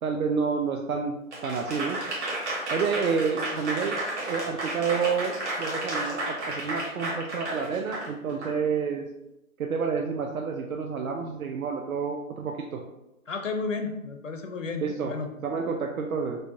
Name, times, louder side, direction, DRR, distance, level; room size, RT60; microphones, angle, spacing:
voice 1, 0.0-1.2 1.4-2.0 2.7-4.0 4.2-9.1 9.6-12.8 14.8-15.1 15.4-16.4, right 5 dB, 75° right, 2 dB, 0.6 m, -29 dB
Applause / Crowd, 1.3-8.5, right 2 dB, 50° right, 1.3 m, -32 dB
voice 2, 13.3-15.3, left 4 dB, 60° left, 5 dB, 0.5 m, -32 dB
5.0 x 2.2 x 2.6 m, 0.92 s
hypercardioid pair, 170°, 43 cm